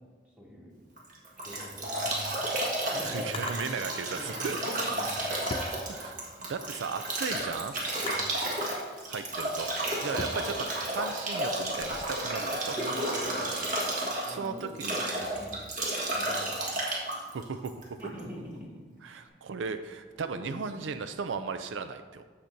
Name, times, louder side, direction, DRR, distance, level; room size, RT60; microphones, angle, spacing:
voice 1, 0.4-0.7 1.4-3.3 4.4-5.3 5.8-6.1 8.0-8.3 10.1-10.3 12.7-13.6 14.2-15.7 16.1-16.7 18.0-18.7 19.1-19.4 20.4-20.6, equal, 5° right, -5 dB, 2.0 m, -44 dB
Bathtub (filling or washing) / Drip / Trickle dribble, 1.0-18.2, right 1 dB, 45° right, 1.6 m, -32 dB
Drawer open or close, 2.3-3.8 4.8-6.4 6.9-8.6 9.2-12.0, left 3 dB, 25° left, 0.4 m, -43 dB
voice 2, 3.0-4.8 5.9-7.7 9.1-9.7 10.0-12.8 14.3-15.0 17.3-17.7 19.0-22.2, right 5 dB, 75° right, 9 dB, 0.4 m, -36 dB
14.5 x 5.9 x 2.7 m, 1.4 s
head